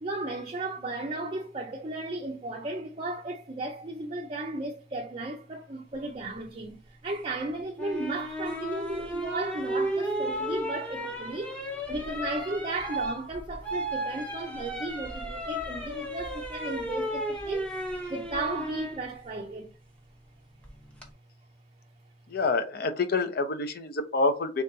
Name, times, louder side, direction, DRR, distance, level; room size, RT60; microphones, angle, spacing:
voice 1, 0.0-11.6 11.9-17.8 18.1-19.7, right 2 dB, 30° right, 0.5 m, -35 dB
sound 1, 7.8-19.0 20.6-21.1, right 1 dB, 5° left, 0.8 m, -34 dB
voice 2, 22.3-24.6, left 3 dB, 55° left, 0.6 m, -27 dB
3.3 x 3.0 x 3.8 m
head